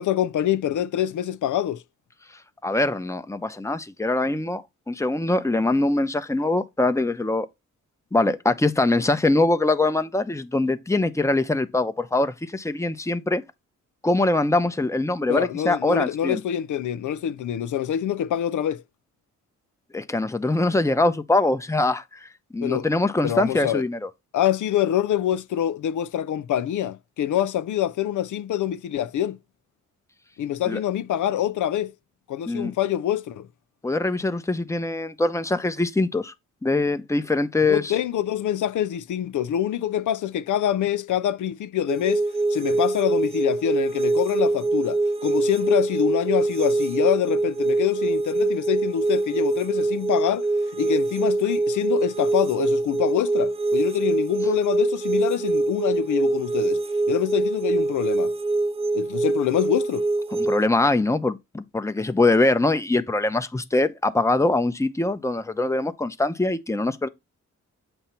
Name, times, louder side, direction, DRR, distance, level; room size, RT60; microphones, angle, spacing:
voice 1, 0.0-1.8 15.3-18.8 22.6-22.9 23.2-23.8 24.3-29.4 30.4-31.9 32.3-33.5 37.7-42.2 42.5-50.5 50.7-56.8 57.1-58.3 58.9-60.1, left 11 dB, 75° left, 0.5 m, -25 dB
voice 2, 2.6-7.5 8.1-13.4 14.0-16.4 19.9-24.1 30.7-30.8 32.5-32.7 33.8-36.3 36.6-37.9 60.3-67.1, left 2 dB, 10° left, 0.8 m, -23 dB
sound 1, 41.9-60.7, right 2 dB, 20° right, 0.4 m, -24 dB
7.9 x 2.9 x 5.7 m
cardioid pair, 70°, 31 cm